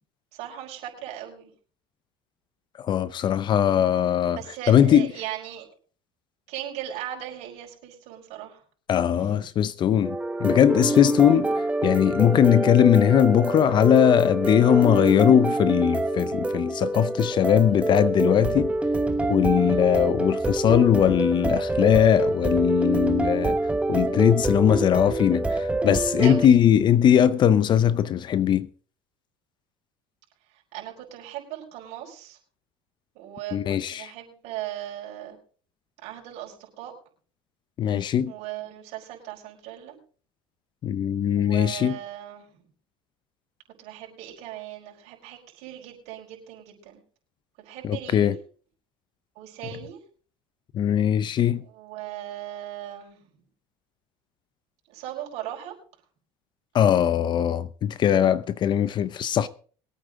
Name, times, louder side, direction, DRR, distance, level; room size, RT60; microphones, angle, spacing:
voice 1, 0.3-1.5 4.3-5.7 6.5-8.6 9.1-9.5 19.5-19.9 26.2-26.6 27.2-27.4 30.7-32.4 33.1-35.4 36.0-36.9 38.3-40.0 41.3-42.6 43.8-47.0 47.6-48.4 49.3-50.0 51.6-53.2 54.9-55.7, right 12 dB, 65° right, 4.9 m, -38 dB
voice 2, 2.8-4.4 4.7-5.1 8.9-18.7 19.3-23.6 23.9-28.7 33.5-34.1 37.8-38.3 40.8-42.0 47.8-48.3 50.7-51.6 56.7-59.5, left 9 dB, 40° left, 0.6 m, -20 dB
sound 1, 10.0-26.5, right 2 dB, 10° right, 1.3 m, -26 dB
22.0 x 8.9 x 3.7 m
supercardioid pair, 115°, 12 cm